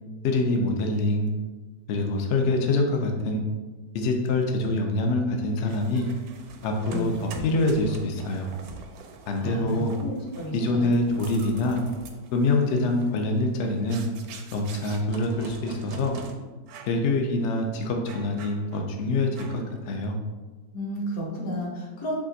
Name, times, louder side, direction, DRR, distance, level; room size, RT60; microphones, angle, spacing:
voice 1, 0.2-1.3 1.9-3.4 3.9-6.1 6.6-8.5 9.3-10.0 10.5-11.8 12.3-14.1 14.5-16.1 16.9-20.2, left 2 dB, 80° left, 2 dB, 0.6 m, -25 dB
sound 1, 5.7-16.3 16.7-17.0 17.4-17.5 18.1-18.9 19.4-19.8, right 4 dB, 70° right, 0.9 m, -44 dB
voice 2, 9.4-10.8 20.7-22.2, equal, 60° left, -2 dB, 1.3 m, -32 dB
4.9 x 2.5 x 3.9 m, 1.3 s
omnidirectional pair, 1.9 m